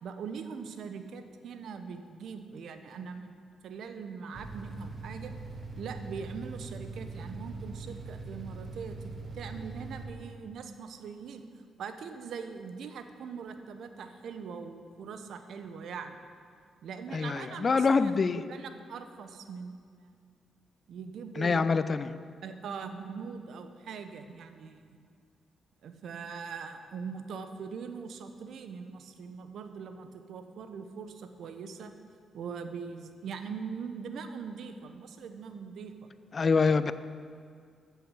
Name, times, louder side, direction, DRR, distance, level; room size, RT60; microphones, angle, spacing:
voice 1, 0.0-5.3 5.8-9.0 9.3-11.4 11.8-16.2 16.8-18.1 18.5-20.1 20.9-21.7 22.4-24.8 25.8-31.9 32.3-36.1, right 6 dB, 70° right, 8 dB, 0.9 m, -41 dB
sound 1, 4.3-10.1, right 3 dB, 45° right, 2.0 m, -42 dB
voice 2, 17.1-18.5 21.4-22.2 36.3-36.9, left 4 dB, 45° left, 14 dB, 0.5 m, -25 dB
14.0 x 7.0 x 6.4 m, 2.2 s
hypercardioid pair, 40°, 0 cm